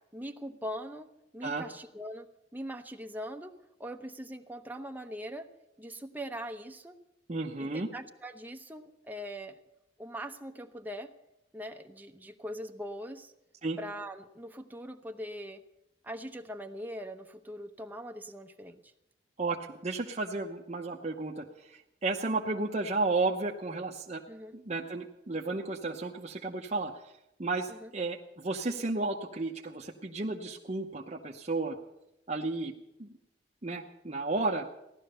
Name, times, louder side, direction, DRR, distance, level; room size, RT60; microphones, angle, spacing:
voice 1, 0.1-5.5 5.8-7.0 7.6-9.6 10.0-11.1 11.5-13.3 13.8-15.6 16.0-18.9 24.3-24.5 27.7-27.9, equal, 10° right, 5 dB, 0.9 m, -41 dB
voice 2, 7.3-7.9 13.6-13.8 19.4-24.2 24.5-27.1 27.4-31.8 32.3-32.7 33.0-33.1 33.6-34.7, right 3 dB, 35° right, 0 dB, 0.8 m, -33 dB
16.5 x 11.5 x 6.7 m, 0.89 s
head